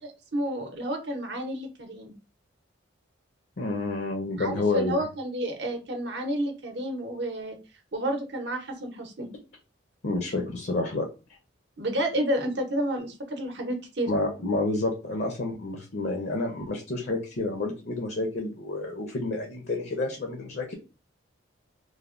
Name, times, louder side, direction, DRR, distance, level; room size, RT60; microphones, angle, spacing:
voice 1, 0.3-2.1 4.4-7.6 7.9-9.3 11.8-14.1, right 1 dB, 55° right, 3 dB, 0.7 m, -30 dB
voice 2, 3.6-4.9 10.0-11.1 14.1-20.7, left 2 dB, 50° left, 2 dB, 0.5 m, -29 dB
3.2 x 2.1 x 2.4 m, 0.32 s
head